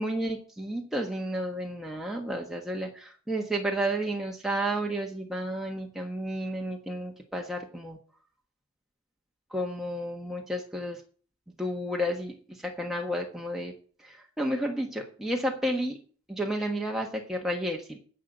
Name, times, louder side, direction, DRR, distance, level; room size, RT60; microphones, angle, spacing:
voice 1, 0.0-8.0 9.5-11.0 11.6-13.7 14.0-16.0 16.3-18.0, equal, ahead, 0 dB, 1.3 m, -31 dB
10.0 x 6.8 x 7.9 m, 0.43 s
head